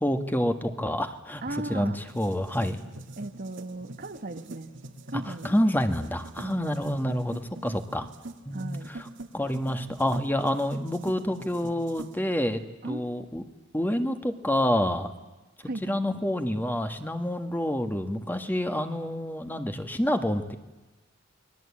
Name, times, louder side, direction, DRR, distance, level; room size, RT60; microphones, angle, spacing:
voice 1, 0.0-2.8 5.4-8.1 8.4-9.1 9.3-12.6 12.9-13.4 13.7-15.1 15.8-20.5, left 1 dB, 10° left, 7 dB, 1.6 m, -28 dB
voice 2, 1.4-2.0 3.2-4.7 5.1-5.6 6.4-6.8 8.5-8.9 12.8-13.3 15.6-16.0, right 2 dB, 50° right, 9 dB, 1.2 m, -37 dB
sound 1, 2.1-12.2, right 2 dB, 65° right, 2.0 m, -45 dB
29.5 x 21.5 x 8.6 m, 1.1 s
head